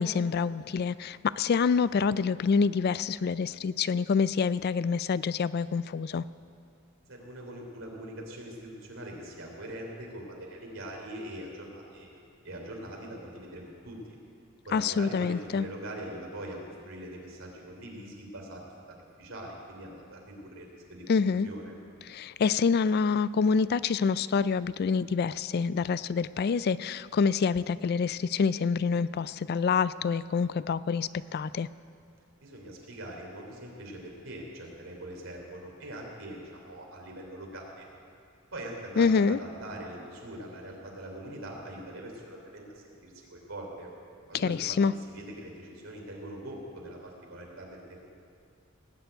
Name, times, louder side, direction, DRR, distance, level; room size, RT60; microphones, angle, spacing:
voice 1, 0.0-6.2 14.7-15.6 21.1-21.5 22.1-31.7 39.0-39.4 44.3-44.9, left 5 dB, 50° left, 17 dB, 0.3 m, -26 dB
voice 2, 7.1-12.2 12.4-14.0 14.6-16.6 16.8-18.6 18.9-21.2 21.4-21.7 32.4-37.9 38.5-43.9 44.3-47.8, right 1 dB, 80° right, 0 dB, 3.3 m, -42 dB
18.5 x 7.0 x 9.0 m, 2.5 s
head